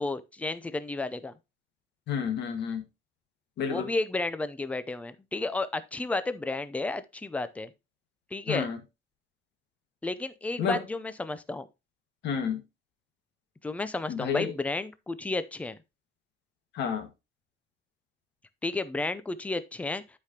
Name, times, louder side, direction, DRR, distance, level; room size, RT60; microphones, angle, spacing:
voice 1, 0.0-1.4 3.7-7.7 8.3-8.7 10.0-11.7 13.6-15.8 18.6-20.0, left 2 dB, 5° left, 0.4 m, -32 dB
voice 2, 2.1-2.8 3.6-3.9 8.5-8.8 10.6-10.8 12.2-12.6 14.1-14.5 16.7-17.1, left 7 dB, 55° left, 1.7 m, -30 dB
11.5 x 5.0 x 2.8 m
cardioid pair, 180°, 21 cm